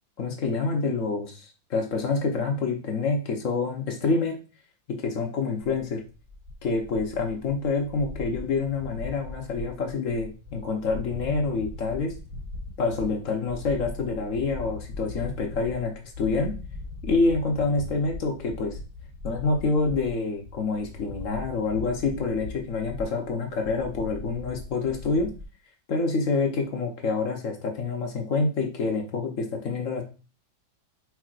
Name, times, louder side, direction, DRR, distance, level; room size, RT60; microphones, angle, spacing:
voice 1, 0.2-4.4 4.9-6.0 6.6-12.1 12.8-16.5 17.0-18.8 19.2-25.3 25.9-30.0, left 4 dB, 55° left, 2 dB, 0.9 m, -27 dB
sound 1, 6.0-25.4, left 2 dB, 45° right, 2.9 m, -40 dB
4.6 x 4.5 x 2.4 m, 0.35 s
omnidirectional pair, 2.1 m